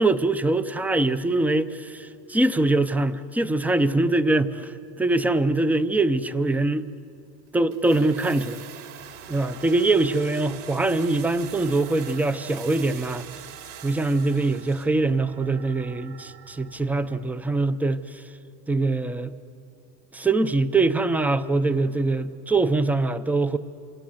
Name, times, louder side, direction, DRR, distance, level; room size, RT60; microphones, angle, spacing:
voice 1, 0.0-6.9 7.5-8.7 9.3-13.2 13.8-18.0 18.7-19.3 20.1-23.6, right 2 dB, 5° right, 0.5 m, -23 dB
sound 1, 7.7-15.0 15.3-15.4, right 9 dB, 55° right, 3.4 m, -43 dB
sound 2, 9.0-17.2, right 9 dB, 70° right, 6.0 m, -50 dB
27.0 x 26.5 x 7.9 m
supercardioid pair, 130°, 48 cm